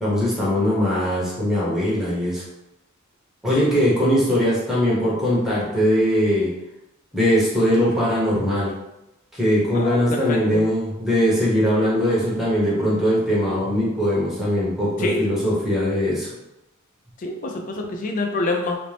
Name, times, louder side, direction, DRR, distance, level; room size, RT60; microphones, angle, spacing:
voice 1, 0.0-2.4 3.4-6.5 7.1-8.7 9.3-16.3, equal, ahead, -8 dB, 0.8 m, -21 dB
voice 2, 9.7-10.7 15.0-15.3 17.2-18.8, left 2 dB, 35° left, 2 dB, 0.3 m, -26 dB
2.5 x 2.0 x 3.2 m, 0.94 s
head